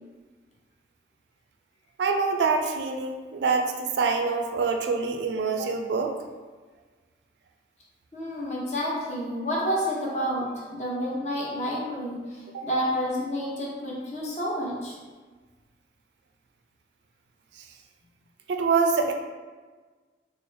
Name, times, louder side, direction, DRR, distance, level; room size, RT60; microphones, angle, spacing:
voice 1, 2.0-6.2 12.5-12.6 17.6-17.7 18.5-19.1, right 4 dB, 75° right, 4 dB, 0.4 m, -25 dB
voice 2, 8.1-15.0, equal, 40° left, -5 dB, 0.7 m, -29 dB
4.1 x 2.0 x 3.2 m, 1.4 s
head